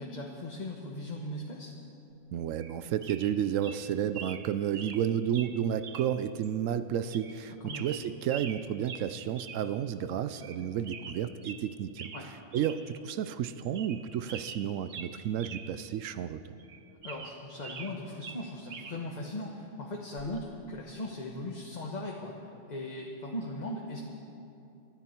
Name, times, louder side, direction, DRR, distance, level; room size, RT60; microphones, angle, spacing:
voice 1, 0.0-1.7 7.6-7.9 12.1-12.3 17.0-24.0, left 1 dB, 35° left, -1 dB, 1.2 m, -39 dB
voice 2, 2.3-12.1 12.5-16.6, right 9 dB, 85° right, 12 dB, 1.0 m, -32 dB
sound 1, 2.6-2.8 3.0-3.3 3.6-3.8 4.1-4.4 4.7-5.0 5.3-5.5 5.8-6.1 6.4-6.5 7.1-7.4 7.7-8.6 8.8-9.1 9.4-9.6 9.9-10.0 10.4-10.6 10.8-11.6 12.0-12.2 12.5-12.8 13.2-13.3 13.6-14.0 14.3-15.6 15.9-16.0 16.6-17.9 18.2-19.0 20.2-20.4, right 6 dB, 60° right, 1.2 m, -44 dB
24.5 x 13.0 x 4.5 m, 2.8 s
omnidirectional pair, 1.3 m